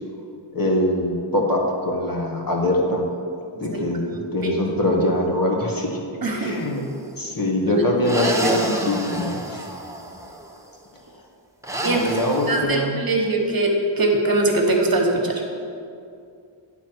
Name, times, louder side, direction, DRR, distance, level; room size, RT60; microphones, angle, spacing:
voice 1, 0.5-3.1 3.6-6.0 6.3-6.8 7.2-9.6 11.9-13.0, left 1 dB, 45° left, -1 dB, 1.4 m, -23 dB
voice 2, 6.2-6.5 7.6-7.8 8.1-8.6 11.8-15.4, right 2 dB, 45° right, 0 dB, 1.3 m, -22 dB
sound 1, 6.4-7.0 8.0-10.5 11.6-12.6, right 1 dB, 5° right, 0.9 m, -30 dB
8.9 x 4.1 x 6.0 m, 2.4 s
cardioid pair, 55°, 49 cm